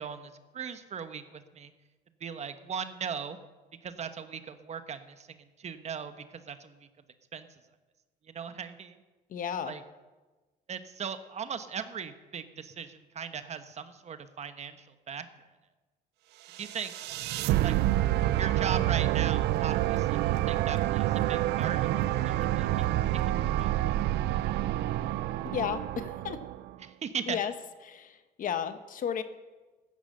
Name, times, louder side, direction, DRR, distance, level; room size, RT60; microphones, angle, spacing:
voice 1, 0.0-1.7 2.2-3.4 3.8-6.9 7.3-7.5 8.3-9.0 9.7-9.8 10.7-15.3 16.6-16.9 17.6-17.7 18.4-23.7 26.8-27.4, right 7 dB, 40° right, 10 dB, 1.1 m, -38 dB
voice 2, 9.3-9.8 25.4-26.4 27.3-27.5 27.8-29.2, left 8 dB, 55° left, 10 dB, 1.1 m, -33 dB
sound 1, 16.5-26.7, right 14 dB, 80° right, 0.6 m, -28 dB
14.5 x 10.5 x 6.8 m, 1.2 s
cardioid pair, 110°, 17 cm